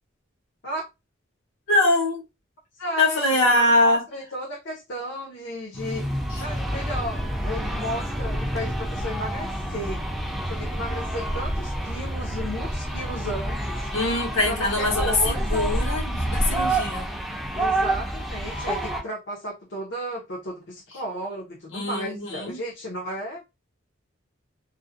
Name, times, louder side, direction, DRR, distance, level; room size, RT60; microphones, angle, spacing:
voice 1, 1.7-2.2 3.0-4.0 13.9-17.1 21.7-22.6, left 2 dB, 80° left, 1.0 m, -23 dB
voice 2, 2.8-10.0 10.5-13.9 14.5-15.8 17.5-23.4, equal, 60° left, 0.6 m, -34 dB
sound 1, 5.7-19.0, right 1 dB, ahead, 0.4 m, -28 dB
2.5 x 2.0 x 2.4 m
head